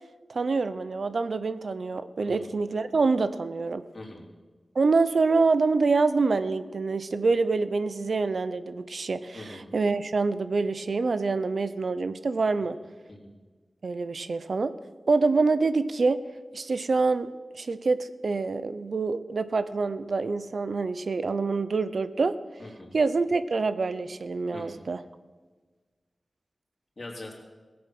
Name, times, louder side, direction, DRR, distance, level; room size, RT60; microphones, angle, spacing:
voice 1, 0.3-3.8 4.8-12.8 13.8-14.7 15.1-16.2 16.5-17.3 17.6-22.4 22.9-25.0, right 4 dB, 75° right, 13 dB, 0.6 m, -26 dB
voice 2, 3.9-4.3 9.3-9.6 13.1-13.3 22.6-22.9 24.5-24.8 27.0-27.3, left 2 dB, 50° left, -1 dB, 3.3 m, -42 dB
16.5 x 8.7 x 6.1 m, 1.3 s
wide cardioid pair, 65°, 0 cm